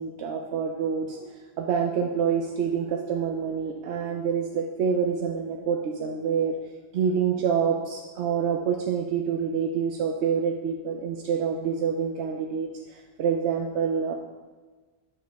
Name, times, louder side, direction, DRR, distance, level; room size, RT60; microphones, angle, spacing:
voice 1, 0.0-6.5 6.9-14.1, right 7 dB, 85° right, 1 dB, 0.9 m, -27 dB
8.5 x 4.9 x 3.4 m, 1.3 s
omnidirectional pair, 1.1 m